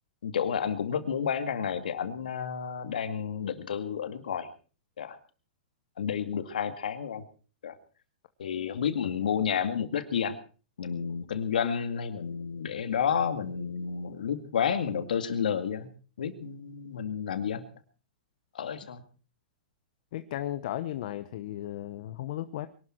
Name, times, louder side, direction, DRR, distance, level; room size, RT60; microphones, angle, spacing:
voice 1, 0.2-4.5 5.0-5.2 6.0-7.2 7.6-7.8 8.4-10.4 10.8-15.9 16.2-17.7 18.5-19.0, left 7 dB, 75° left, 10 dB, 2.2 m, -30 dB
voice 2, 20.1-22.7, left 13 dB, 60° left, 11 dB, 1.0 m, -35 dB
23.0 x 12.0 x 4.5 m, 0.38 s
hypercardioid pair, 120°, 5 cm